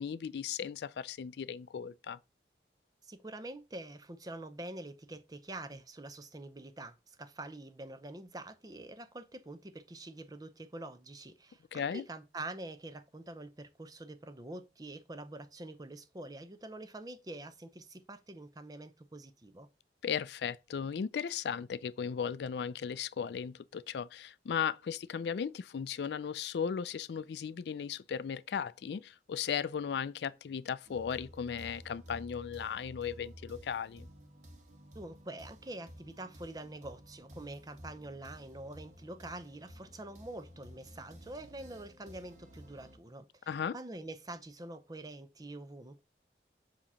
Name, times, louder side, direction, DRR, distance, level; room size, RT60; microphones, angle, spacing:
voice 1, 0.0-2.2 11.7-12.0 20.0-34.1 43.5-43.8, left 7 dB, 65° left, 0.3 m, -36 dB
voice 2, 3.0-19.7 34.9-43.3 43.7-46.0, right 2 dB, 20° right, 0.6 m, -46 dB
sound 1, 30.9-43.0, equal, 45° right, 1.2 m, -53 dB
7.3 x 2.9 x 5.5 m
head